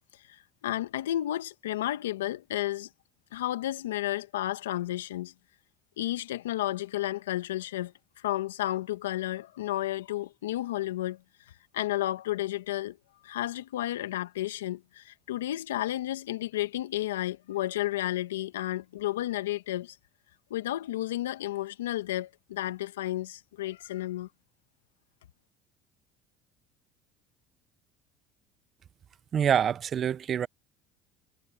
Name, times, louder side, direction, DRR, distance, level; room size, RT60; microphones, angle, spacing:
voice 1, 0.3-2.9 3.3-5.3 6.0-7.9 8.2-11.2 11.7-13.0 13.2-20.0 20.5-24.3, left 14 dB, 90° left, 1.7 m, -32 dB
voice 2, 29.3-30.5, right 8 dB, 45° right, 0.6 m, -26 dB
hypercardioid pair, 75°, 0 cm